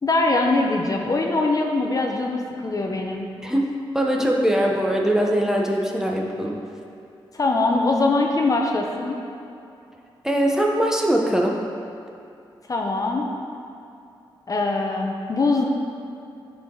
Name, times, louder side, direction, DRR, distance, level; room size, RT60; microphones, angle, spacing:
voice 1, 0.0-3.3 7.3-9.2 12.7-13.3 14.5-15.7, left 2 dB, 40° left, 1 dB, 0.8 m, -22 dB
voice 2, 3.4-6.6 10.2-11.6, right 1 dB, 5° right, -1 dB, 0.9 m, -22 dB
10.0 x 4.8 x 3.8 m, 2.6 s
cardioid pair, 75°, 9 cm